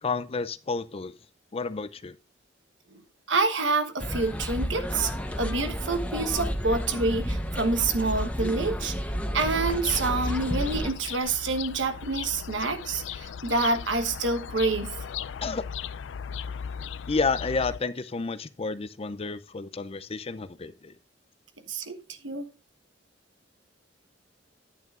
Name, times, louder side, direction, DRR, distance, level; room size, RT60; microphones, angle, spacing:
voice 1, 0.0-1.2 1.5-2.2 15.4-15.6 17.1-20.9, left 4 dB, 30° left, 0.5 m, -30 dB
voice 2, 3.3-5.1 5.4-8.9 9.3-15.1 21.7-22.5, right 3 dB, 80° right, 1.2 m, -27 dB
sound 1, 4.0-10.9, equal, 10° left, 0.9 m, -31 dB
sound 2, 9.8-17.8, left 7 dB, 80° left, 0.4 m, -37 dB
11.0 x 9.0 x 2.5 m
head